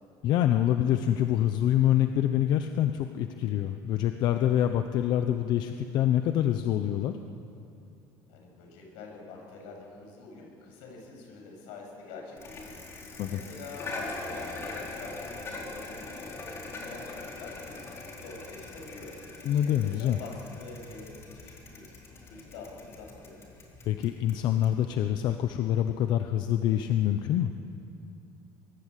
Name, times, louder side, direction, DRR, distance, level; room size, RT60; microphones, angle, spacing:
voice 1, 0.2-7.2 13.2-13.4 19.4-20.2 23.9-27.5, left 11 dB, 55° left, 7 dB, 0.9 m, -26 dB
voice 2, 8.3-16.4 16.7-19.1 19.5-21.8 22.1-23.4, left 4 dB, 85° left, 1 dB, 7.6 m, -46 dB
Bicycle, 12.4-25.5, left 2 dB, 30° left, 4.3 m, -42 dB
23.5 x 23.0 x 8.5 m, 2.6 s
cardioid pair, 160°, 9 cm